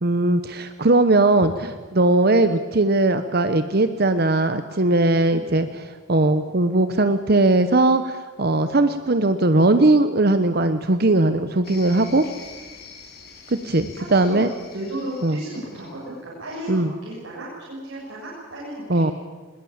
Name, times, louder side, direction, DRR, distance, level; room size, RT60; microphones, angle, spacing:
voice 1, 0.0-5.7 6.1-12.2 13.5-14.5 15.2-15.4 16.7-16.9 18.9-19.1, right 2 dB, 50° right, 10 dB, 0.9 m, -19 dB
sound 1, 11.6-16.1, left 5 dB, 50° left, 5.3 m, -45 dB
voice 2, 13.6-19.1, right 1 dB, 75° right, -5 dB, 6.6 m, -34 dB
21.0 x 20.5 x 8.8 m, 1.3 s
head